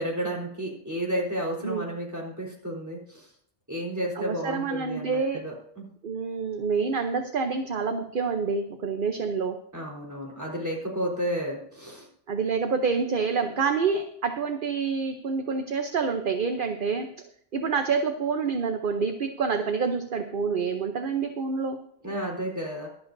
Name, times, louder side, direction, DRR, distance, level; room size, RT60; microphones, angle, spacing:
voice 1, 0.0-3.3 3.7-5.8 9.7-12.1 22.0-22.9, equal, 15° right, -2 dB, 3.7 m, -32 dB
voice 2, 4.2-5.4 6.0-9.6 12.3-17.1 17.5-21.8, right 5 dB, 50° right, 6 dB, 0.9 m, -27 dB
23.0 x 8.2 x 2.7 m, 0.69 s
omnidirectional pair, 1.3 m